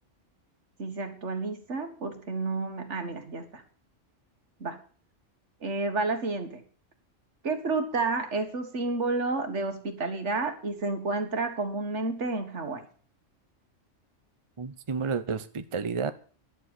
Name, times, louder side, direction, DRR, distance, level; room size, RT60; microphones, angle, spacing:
voice 1, 0.8-3.6 4.6-4.8 5.6-6.6 7.4-12.9, right 3 dB, 70° right, 7 dB, 2.0 m, -30 dB
voice 2, 14.6-16.1, right 5 dB, 30° right, 11 dB, 0.7 m, -31 dB
11.0 x 7.7 x 7.9 m, 0.42 s
omnidirectional pair, 1.3 m